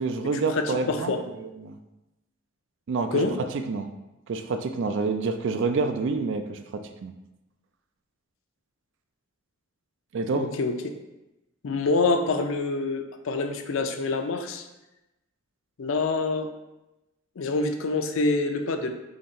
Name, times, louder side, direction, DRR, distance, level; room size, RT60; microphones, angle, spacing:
voice 1, 0.0-1.8 2.9-3.2 3.5-3.9 4.3-7.1 10.1-10.5, right 4 dB, 60° right, 7 dB, 0.4 m, -28 dB
voice 2, 0.6-1.2 3.1-3.3 10.3-10.7 11.6-14.6 15.8-16.5 17.4-18.9, left 3 dB, 65° left, 6 dB, 0.4 m, -26 dB
3.9 x 2.8 x 4.2 m, 0.97 s
head